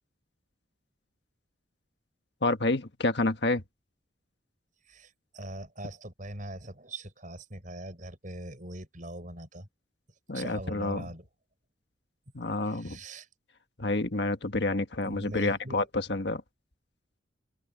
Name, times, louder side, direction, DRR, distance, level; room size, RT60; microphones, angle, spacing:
voice 1, 2.4-3.6 10.3-11.0 12.3-13.0 13.8-16.4, left 2 dB, 60° left, 1.5 m, -29 dB
voice 2, 4.8-9.7 10.3-11.3 12.7-13.3 15.0-15.9, right 1 dB, 45° right, 5.2 m, -41 dB
open air
head